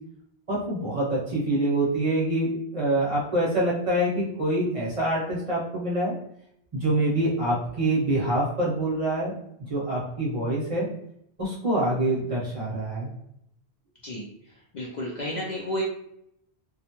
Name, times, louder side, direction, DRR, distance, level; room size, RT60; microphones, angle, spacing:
voice 1, 0.5-6.2 6.7-9.3 9.7-10.9 11.4-13.1, right 1 dB, 35° right, -6 dB, 0.7 m, -25 dB
voice 2, 14.7-15.8, equal, 55° left, -4 dB, 0.5 m, -31 dB
2.3 x 2.1 x 2.8 m, 0.75 s
omnidirectional pair, 1.1 m